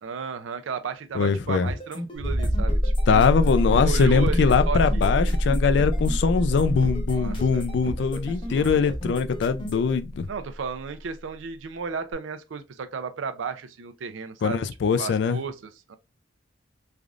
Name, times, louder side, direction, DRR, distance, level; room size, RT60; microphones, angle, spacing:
voice 1, 0.0-3.2 3.8-5.6 7.1-7.6 8.1-8.7 10.3-16.0, right 5 dB, 85° right, 0.4 m, -34 dB
voice 2, 1.1-1.7 3.1-10.3 14.4-15.4, left 5 dB, 65° left, 0.3 m, -22 dB
sound 1, 1.7-9.9, equal, 25° left, 0.7 m, -36 dB
sound 2, 2.2-10.6 12.1-12.2, equal, 30° right, 0.7 m, -25 dB
3.3 x 2.4 x 2.4 m
head